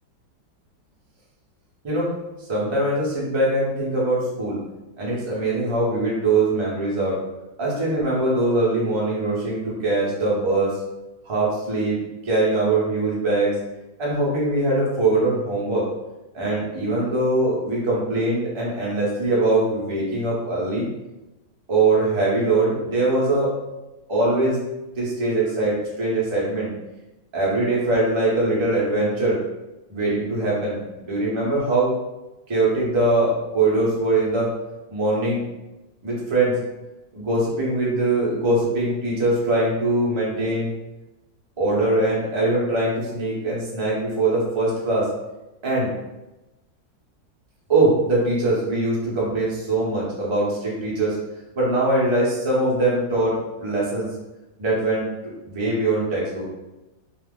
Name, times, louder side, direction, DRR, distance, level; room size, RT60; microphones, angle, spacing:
voice 1, 2.5-4.6 5.0-7.2 7.6-10.8 11.2-12.0 12.2-13.6 14.0-15.9 16.3-20.9 21.7-23.5 24.1-24.6 24.9-26.7 27.3-29.4 29.9-31.9 32.5-34.5 34.9-35.4 36.0-36.5 37.1-40.7 41.6-45.1 45.6-45.9 47.7-51.2 51.5-54.1 54.6-55.1 55.4-56.4, right 2 dB, 35° right, -6 dB, 0.4 m, -22 dB
2.8 x 2.4 x 3.5 m, 1.0 s
omnidirectional pair, 2.0 m